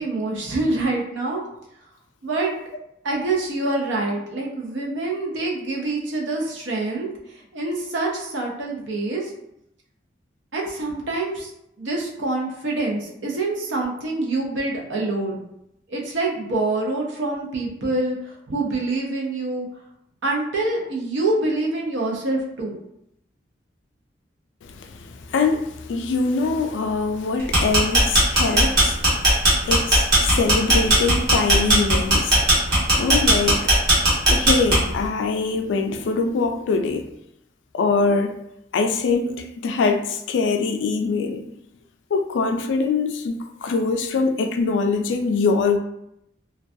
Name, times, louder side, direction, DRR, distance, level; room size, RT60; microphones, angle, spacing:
voice 1, 0.0-1.4 2.2-2.5 3.0-9.3 10.5-11.5 11.8-15.4 15.9-19.7 20.2-22.8 33.6-33.8, right 2 dB, 80° right, 0.6 m, -26 dB
voice 2, 24.6-33.7 34.3-37.1 37.7-38.4 38.7-41.5 42.1-45.8, left 4 dB, 80° left, 0.3 m, -23 dB
sound 1, 27.4-35.0, right 1 dB, 60° right, 1.1 m, -17 dB
2.2 x 2.2 x 2.5 m
head